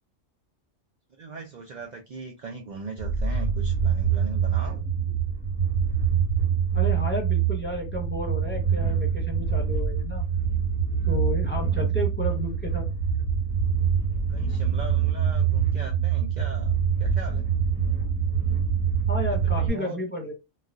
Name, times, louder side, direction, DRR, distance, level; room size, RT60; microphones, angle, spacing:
voice 1, 1.2-4.8 11.7-11.8 14.3-17.5 19.3-20.0, right 4 dB, 70° right, 0.4 m, -39 dB
sound 1, 3.0-19.7, right 7 dB, 5° right, 1.2 m, -25 dB
voice 2, 6.7-10.2 11.0-12.9 19.1-20.3, left 1 dB, 10° left, 0.9 m, -32 dB
4.0 x 2.3 x 2.4 m
omnidirectional pair, 1.4 m